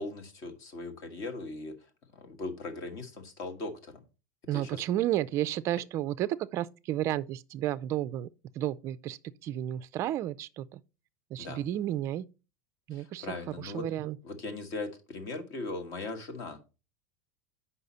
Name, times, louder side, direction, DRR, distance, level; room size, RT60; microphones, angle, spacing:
voice 1, 0.0-1.7 2.1-4.0 4.5-4.8 11.4-11.7 12.9-13.8 14.2-16.7, left 3 dB, 40° left, 1.5 m, -39 dB
voice 2, 4.5-8.3 8.6-10.8 11.3-12.2 12.9-14.2, right 13 dB, 30° right, 0.4 m, -32 dB
7.9 x 5.6 x 4.1 m
supercardioid pair, 160°, 9 cm